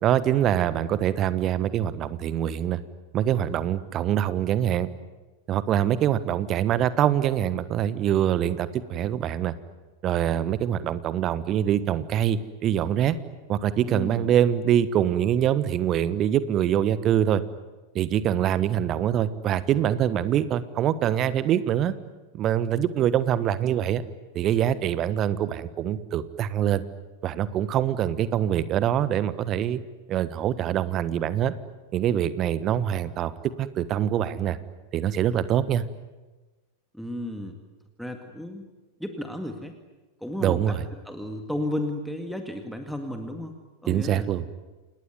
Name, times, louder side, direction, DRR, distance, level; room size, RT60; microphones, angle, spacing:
voice 1, 0.0-2.8 3.1-4.9 5.5-9.5 10.0-13.1 13.5-17.4 17.9-21.9 22.3-24.0 24.3-26.8 27.2-29.8 30.1-31.5 31.9-34.6 34.9-35.8 40.4-40.8 43.9-44.4, right 10 dB, 30° right, 15 dB, 1.3 m, -24 dB
voice 2, 13.9-14.3 36.9-37.6 38.0-38.7 39.0-39.8 40.2-40.8 41.0-43.6 43.8-44.3, left 1 dB, ahead, 5 dB, 2.0 m, -33 dB
28.5 x 20.0 x 9.5 m, 1.2 s
figure-of-eight pair, 90°, 0 cm